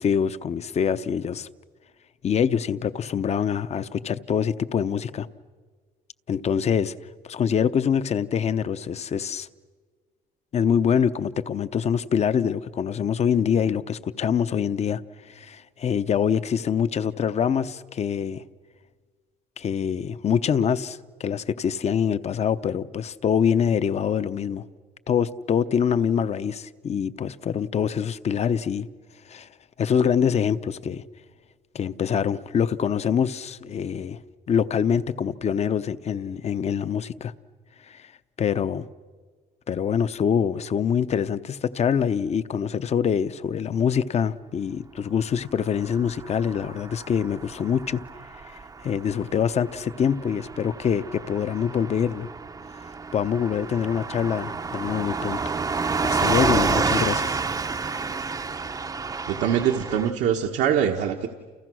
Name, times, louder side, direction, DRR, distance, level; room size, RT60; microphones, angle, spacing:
voice 1, 0.0-1.5 2.2-5.3 6.3-6.9 7.2-9.5 10.5-15.0 15.3-18.4 19.6-24.6 25.1-28.9 29.3-29.5 29.8-31.0 31.7-34.2 34.5-37.3 37.9-38.1 38.4-38.9 39.7-48.0 48.8-52.3 53.1-55.6 56.0-57.4, left 7 dB, 40° left, 0.8 m, -25 dB
Car passing by / Truck, 45.8-60.1, right 4 dB, 20° right, 0.7 m, -29 dB
voice 2, 59.3-61.3, right 9 dB, 80° right, 1.4 m, -23 dB
30.0 x 29.0 x 6.3 m
cardioid pair, 110°, 17 cm